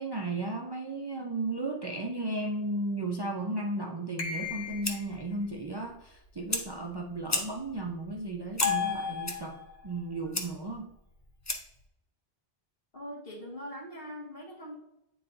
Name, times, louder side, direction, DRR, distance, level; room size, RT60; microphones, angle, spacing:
voice 1, 0.0-10.9, right 2 dB, 30° right, 1 dB, 0.5 m, -35 dB
sound 1, 4.2-5.1 8.6-9.8, left 7 dB, 50° left, 0.8 m, -33 dB
Fire, 4.4-11.9, left 2 dB, 20° left, 0.5 m, -38 dB
voice 2, 12.9-14.8, equal, 65° left, -3 dB, 2.0 m, -42 dB
9.3 x 3.9 x 2.6 m, 0.83 s
omnidirectional pair, 1.0 m